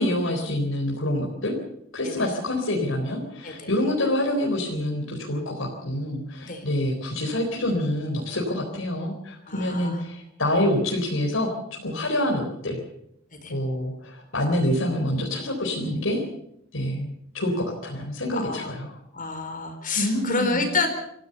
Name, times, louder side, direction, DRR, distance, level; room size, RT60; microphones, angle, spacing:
voice 1, 0.0-1.5 1.9-12.8 13.5-16.2 16.7-19.0 20.0-20.7, left 1 dB, 80° left, 0 dB, 4.2 m, -26 dB
voice 2, 9.5-10.0 13.3-13.5 18.3-18.7 19.1-20.9, left 3 dB, 45° left, 6 dB, 4.4 m, -28 dB
26.0 x 15.5 x 6.9 m, 0.75 s
head